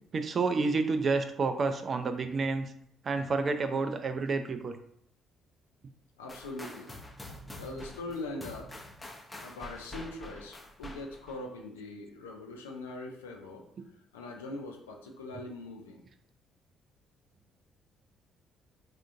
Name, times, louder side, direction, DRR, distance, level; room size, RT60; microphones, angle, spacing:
voice 1, 0.1-2.7 3.0-4.8, right 4 dB, 45° right, 8 dB, 0.3 m, -29 dB
voice 2, 6.2-6.9 7.6-8.7 9.4-13.6 14.1-16.0, left 2 dB, 80° left, 1 dB, 0.4 m, -41 dB
sound 1, 6.3-11.4, left 1 dB, 15° left, 0.6 m, -46 dB
3.5 x 2.4 x 2.6 m, 0.71 s
figure-of-eight pair, 45°, 0 cm